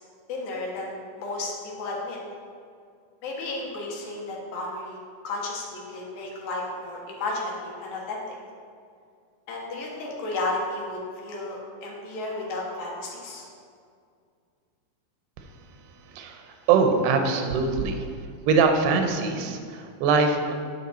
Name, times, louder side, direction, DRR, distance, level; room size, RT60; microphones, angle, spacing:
voice 1, 0.3-1.5 1.8-2.2 3.2-5.0 5.2-8.4 9.5-13.4, left 2 dB, 70° left, -2 dB, 2.9 m, -33 dB
voice 2, 16.1-18.1 18.5-20.5, right 5 dB, 90° right, 5 dB, 2.8 m, -23 dB
9.7 x 6.7 x 4.2 m, 2.2 s
omnidirectional pair, 4.5 m